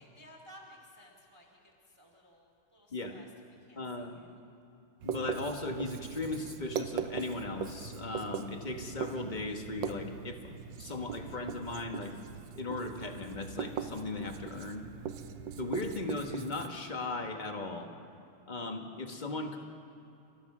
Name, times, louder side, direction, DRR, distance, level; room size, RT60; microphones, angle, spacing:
voice 1, 0.0-3.3 3.6-4.4, equal, 10° right, -1 dB, 2.1 m, -57 dB
voice 2, 3.8-4.2 5.0-10.4 10.8-12.1 12.6-14.8 15.6-17.9 18.5-19.6, left 2 dB, 25° left, 4 dB, 1.2 m, -37 dB
Writing, 5.0-16.7, right 7 dB, 65° right, 1.4 m, -40 dB
29.0 x 14.5 x 6.1 m, 2.8 s
omnidirectional pair, 2.4 m